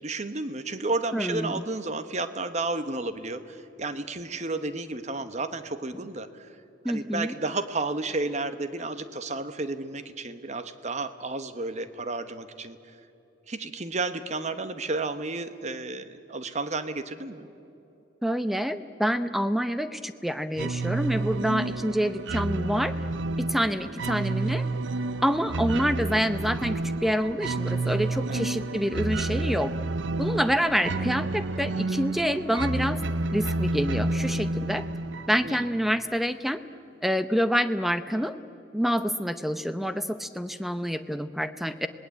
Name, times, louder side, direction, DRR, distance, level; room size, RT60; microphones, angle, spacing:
voice 1, 0.0-6.5 6.9-12.8 13.5-17.5 28.3-28.4 35.4-35.6, right 3 dB, 35° right, 11 dB, 1.1 m, -32 dB
voice 2, 1.1-1.6 6.8-7.4 18.2-23.0 23.4-24.7 25.2-29.7 30.2-33.0 33.3-34.8 35.3-36.6 37.0-38.4 38.7-41.9, equal, ahead, 11 dB, 0.7 m, -27 dB
sound 1, 20.6-36.1, right 2 dB, 70° right, 0.7 m, -30 dB
26.5 x 19.5 x 8.4 m, 2.9 s
head